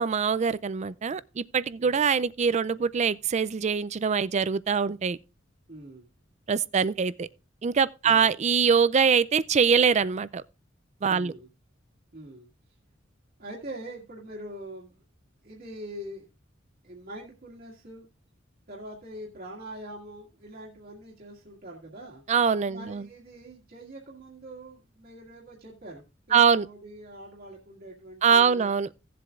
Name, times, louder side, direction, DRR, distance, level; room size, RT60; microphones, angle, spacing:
voice 1, 0.0-5.2 6.5-7.3 7.6-10.4 11.0-11.3 22.3-23.0 26.3-26.7 28.2-28.9, right 6 dB, 35° right, 0.4 m, -23 dB
voice 2, 5.7-6.1 8.0-8.3 11.1-11.5 12.1-12.5 13.4-15.0 15.4-16.3 16.8-18.1 18.7-22.2 22.7-28.7, right 1 dB, 50° right, 1.9 m, -43 dB
17.0 x 7.6 x 2.4 m
head